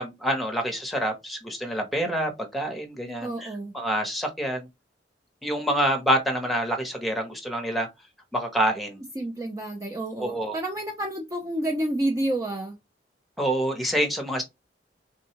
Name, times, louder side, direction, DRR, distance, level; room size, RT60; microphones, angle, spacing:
voice 1, 0.0-4.7 5.4-7.9 8.3-9.0 10.2-10.6 13.4-14.4, right 1 dB, ahead, 0.8 m, -27 dB
voice 2, 3.2-3.7 9.2-12.8, right 1 dB, 20° right, 0.4 m, -29 dB
3.6 x 2.2 x 2.8 m
head